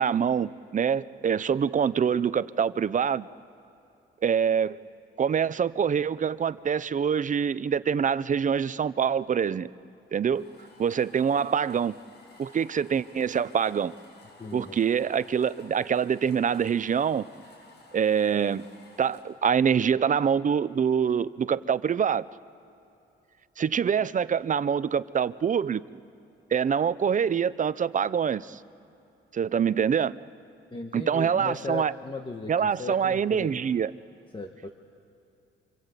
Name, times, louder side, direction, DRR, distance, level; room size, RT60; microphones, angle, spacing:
voice 1, 0.0-3.3 4.2-4.8 5.2-9.7 10.1-10.4 10.8-11.9 12.4-13.9 14.5-17.3 17.9-18.7 19.0-22.2 23.6-25.8 26.5-28.6 29.3-30.1 30.9-31.9 32.5-33.9, right 7 dB, 40° right, 16 dB, 0.7 m, -25 dB
sound 1, 10.3-19.3, left 3 dB, 55° left, 7.9 m, -54 dB
voice 2, 14.4-14.8 30.7-33.5 34.3-34.7, left 3 dB, 25° left, 4 dB, 1.7 m, -37 dB
27.0 x 26.5 x 8.3 m, 2.8 s
cardioid pair, 90°, 20 cm